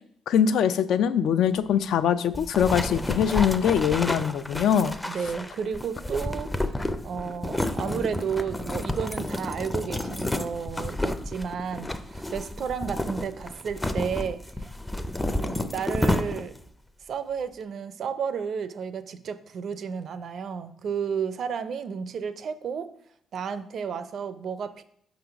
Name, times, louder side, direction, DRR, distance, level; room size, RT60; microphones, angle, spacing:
voice 1, 0.3-4.9, left 8 dB, 75° left, 12 dB, 0.3 m, -23 dB
sound 1, 2.3-16.7, left 1 dB, 10° left, 0.4 m, -30 dB
voice 2, 5.1-14.4 15.4-16.5 17.1-22.9 23.3-24.8, right 6 dB, 60° right, 13 dB, 0.4 m, -32 dB
5.0 x 3.9 x 5.7 m, 0.68 s
cardioid pair, 90°, 0 cm